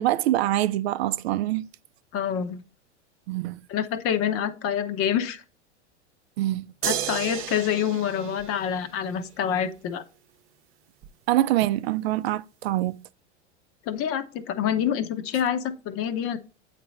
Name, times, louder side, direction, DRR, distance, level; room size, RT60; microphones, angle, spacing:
voice 1, 0.0-1.7 3.3-3.6 6.4-6.7 11.3-12.9, right 14 dB, 60° right, 0.5 m, -24 dB
voice 2, 2.1-2.6 3.7-5.4 6.8-10.0 13.9-16.4, left 9 dB, 40° left, 0.8 m, -27 dB
sound 1, 6.8-9.3 11.0-11.1, right 11 dB, 40° right, 0.8 m, -33 dB
8.3 x 3.4 x 4.1 m
hypercardioid pair, 90°, 35 cm